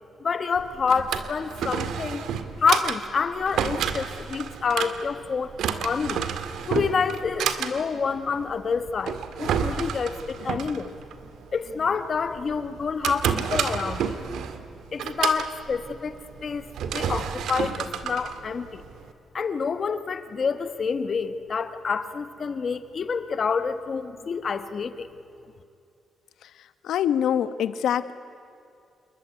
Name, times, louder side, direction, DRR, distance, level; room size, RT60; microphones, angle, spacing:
voice 1, 0.2-2.2 2.6-5.5 5.8-6.2 6.7-10.9 11.5-14.2 14.9-18.8 19.3-25.1, left 5 dB, 35° left, 11 dB, 1.2 m, -28 dB
Drawer open or close, 0.5-19.1, right 7 dB, 85° right, 1.8 m, -31 dB
voice 2, 26.8-28.1, left 9 dB, 80° left, 13 dB, 1.3 m, -24 dB
28.0 x 21.5 x 9.7 m, 2.6 s
wide cardioid pair, 175°, 0 cm